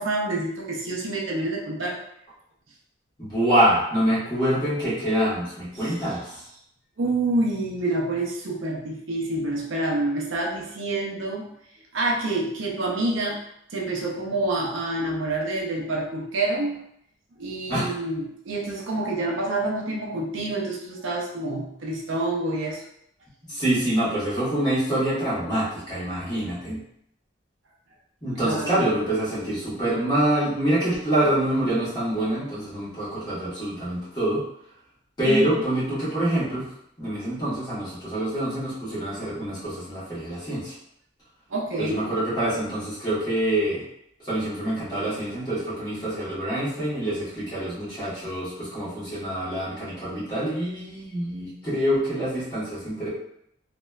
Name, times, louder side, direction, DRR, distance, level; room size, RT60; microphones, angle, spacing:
voice 1, 0.0-2.0 5.7-5.9 7.0-11.5 11.9-13.4 13.7-16.8 17.4-22.8 28.4-28.8 35.2-35.4 41.5-42.0, right 2 dB, 70° right, -2 dB, 0.5 m, -27 dB
voice 2, 3.2-6.3 17.7-17.9 23.5-26.8 28.2-34.4 35.2-36.6 37.0-40.7 41.8-43.8 44.3-53.1, right 1 dB, 20° left, -10 dB, 1.2 m, -26 dB
3.0 x 2.1 x 2.3 m, 0.74 s
head